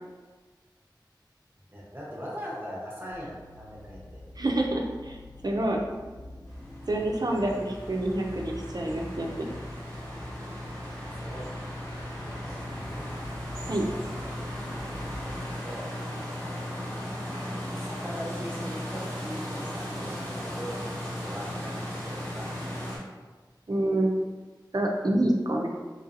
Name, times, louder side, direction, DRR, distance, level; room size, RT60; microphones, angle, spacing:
voice 1, 1.7-4.2 11.0-11.6 12.4-13.0 15.2-15.3 15.6-16.1 17.7-22.5, equal, 25° right, -5 dB, 0.8 m, -40 dB
sound 1, 3.1-15.4, left 1 dB, 10° left, 0.6 m, -45 dB
voice 2, 4.4-5.2 5.4-5.8 6.9-9.5 13.7-13.9 23.7-24.2 24.7-25.7, right 1 dB, 55° right, 1 dB, 0.4 m, -27 dB
sound 2, 6.5-23.0, equal, 25° left, 1.4 m, -36 dB
3.2 x 2.6 x 2.5 m, 1.3 s
wide cardioid pair, 45°, 8 cm